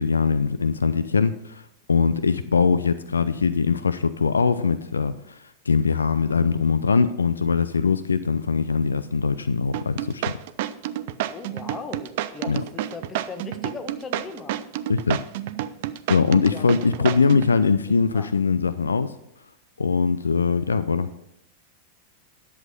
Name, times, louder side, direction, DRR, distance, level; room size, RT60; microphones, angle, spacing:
voice 1, 0.0-1.6 1.9-10.3 12.5-12.6 14.9-15.2 16.1-19.1 19.8-21.1, left 5 dB, 75° left, 14 dB, 0.4 m, -22 dB
sound 1, 9.7-17.5, right 13 dB, 50° right, 0.5 m, -29 dB
voice 2, 11.3-14.6 16.4-16.7 17.1-17.2 17.5-17.6 18.1-18.3, left 4 dB, 20° left, 7 dB, 1.3 m, -38 dB
11.0 x 7.2 x 5.3 m, 0.83 s
figure-of-eight pair, 90°, 0 cm